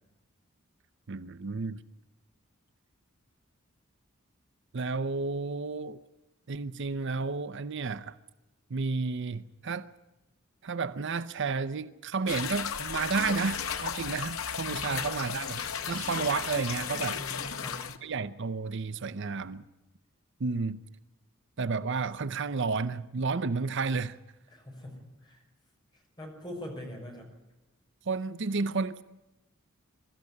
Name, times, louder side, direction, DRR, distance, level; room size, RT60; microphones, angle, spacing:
voice 1, 1.1-1.8 4.7-6.0 6.5-8.2 8.7-9.9 10.6-15.6 15.9-17.2 18.0-19.6 20.4-20.8 21.6-24.2 28.1-29.0, right 4 dB, 60° right, 0.7 m, -31 dB
sound 1, 12.3-18.0, left 7 dB, 90° left, 1.3 m, -34 dB
voice 2, 14.6-15.0 17.1-17.9 24.5-25.4 25.9-27.3, equal, 20° left, 5.9 m, -43 dB
23.0 x 13.5 x 9.8 m
head